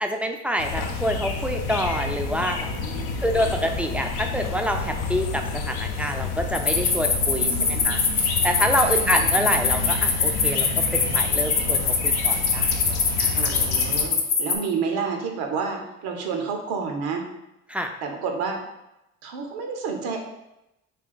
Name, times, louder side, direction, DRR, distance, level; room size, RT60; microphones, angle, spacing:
voice 1, 0.0-2.7 3.2-8.0 8.4-10.7 10.9-13.5 17.7-17.9, equal, 5° right, 3 dB, 0.4 m, -27 dB
sound 1, 0.6-14.1, left 4 dB, 75° left, 0.6 m, -30 dB
voice 2, 2.8-3.6 7.4-8.3 8.8-9.2 13.3-17.3 18.0-18.6 19.2-20.2, right 5 dB, 75° right, 3 dB, 0.8 m, -30 dB
sound 2, 6.5-14.5, left 5 dB, 40° left, 0.8 m, -22 dB
3.4 x 2.4 x 3.8 m, 0.89 s
hypercardioid pair, 60°, 39 cm